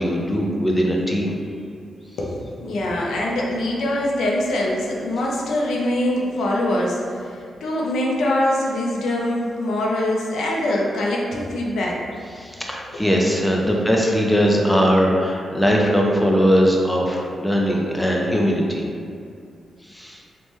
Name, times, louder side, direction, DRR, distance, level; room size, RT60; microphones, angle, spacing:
voice 1, 0.0-1.4 12.3-18.9 19.8-20.2, equal, 5° left, -1 dB, 0.4 m, -20 dB
voice 2, 2.2-12.0 13.6-13.7, left 1 dB, 85° left, -2 dB, 0.4 m, -23 dB
3.1 x 2.1 x 2.9 m, 2.3 s
cardioid pair, 75°, 0 cm